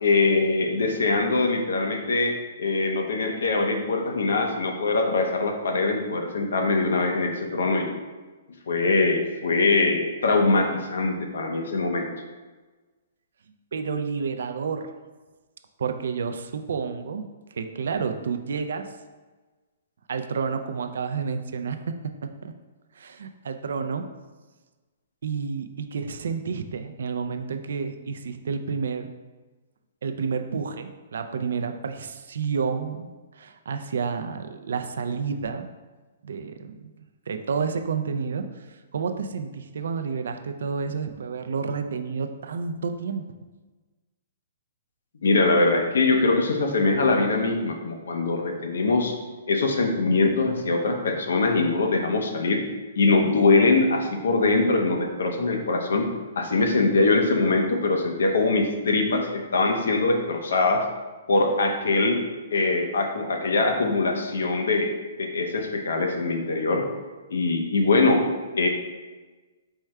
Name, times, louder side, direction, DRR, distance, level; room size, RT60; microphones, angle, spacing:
voice 1, 0.0-7.9 8.7-12.1 45.2-49.1 49.5-52.6 52.9-56.1 56.4-60.8 61.3-62.2 62.5-64.9 65.2-66.9 67.3-68.2 68.5-68.7, left 3 dB, 85° left, 3 dB, 0.7 m, -22 dB
voice 2, 13.7-14.9 15.8-17.3 17.5-18.9 20.1-22.5 23.0-24.1 25.2-29.1 30.0-33.1 33.4-35.7 36.2-36.9 37.3-43.2, right 5 dB, 70° right, 7 dB, 0.3 m, -30 dB
4.5 x 2.2 x 4.6 m, 1.3 s
hypercardioid pair, 175°, 0 cm